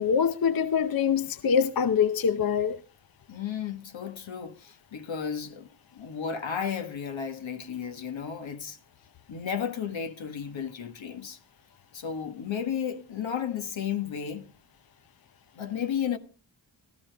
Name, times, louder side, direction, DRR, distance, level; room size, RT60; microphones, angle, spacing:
voice 1, 0.0-2.8, left 7 dB, 50° left, 0.7 m, -24 dB
voice 2, 3.3-8.8 9.3-11.4 11.9-14.5 15.5-16.2, left 7 dB, 75° left, 1.5 m, -33 dB
17.5 x 13.0 x 3.4 m
cardioid pair, 70°, 46 cm